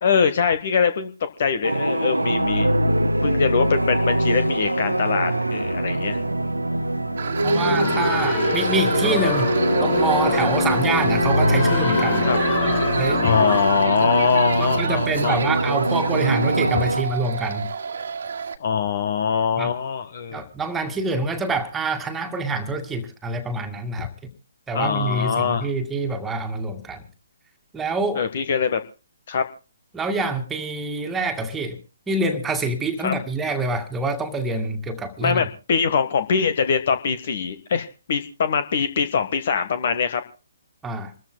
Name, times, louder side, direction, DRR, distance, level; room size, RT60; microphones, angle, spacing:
voice 1, 0.0-2.9 3.2-6.2 12.3-12.4 13.2-15.4 16.7-16.8 18.6-20.4 24.7-25.7 28.1-28.8 29.3-29.4 33.0-33.1 35.2-40.2, left 6 dB, 50° left, 11 dB, 1.4 m, -23 dB
sound 1, 1.6-17.0, right 1 dB, 85° right, 1.0 m, -23 dB
sound 2, 7.2-18.6, right 5 dB, 55° right, 1.7 m, -30 dB
sound 3, 7.4-13.6, left 6 dB, 30° left, 2.0 m, -26 dB
voice 2, 7.4-9.5 9.8-12.3 13.0-13.2 14.6-17.6 19.6-19.7 20.3-24.1 24.7-27.0 27.7-28.2 29.9-31.8 32.1-35.4 40.8-41.1, right 2 dB, 10° right, 4 dB, 2.1 m, -26 dB
28.0 x 14.0 x 2.3 m, 0.33 s
figure-of-eight pair, 135°, 0 cm